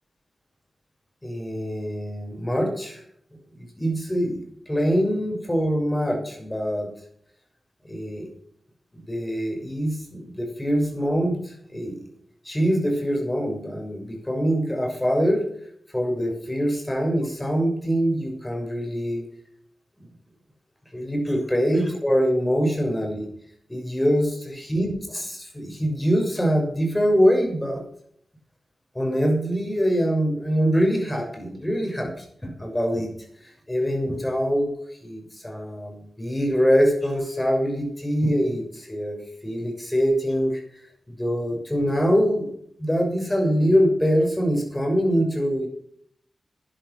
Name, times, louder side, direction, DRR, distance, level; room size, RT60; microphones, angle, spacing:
voice 1, 1.2-3.0 3.6-6.9 7.9-8.3 8.9-12.0 12.4-15.4 15.9-19.2 20.9-23.3 23.7-27.8 28.9-33.1 33.7-34.7 35.0-39.2 39.4-40.6 41.2-42.5 42.8-45.7, equal, 15° left, 2 dB, 6.4 m, -24 dB
12.0 x 10.5 x 6.3 m, 0.67 s
cardioid pair, 65°, 0 cm